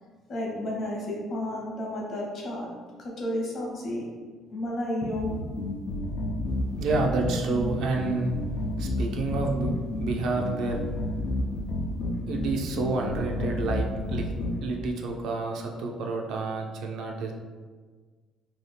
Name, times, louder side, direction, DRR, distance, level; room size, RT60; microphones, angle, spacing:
voice 1, 0.3-2.7 3.0-4.1 4.5-5.3, left 1 dB, 40° left, -2 dB, 0.8 m, -32 dB
sound 1, 5.1-14.6, left 1 dB, 75° left, 0.4 m, -30 dB
voice 2, 6.8-8.3 8.8-9.7 10.0-10.8 12.3-14.3 14.6-17.3, right 3 dB, 70° right, 1 dB, 0.4 m, -29 dB
2.7 x 2.3 x 3.3 m, 1.4 s
cardioid pair, 150°, 0 cm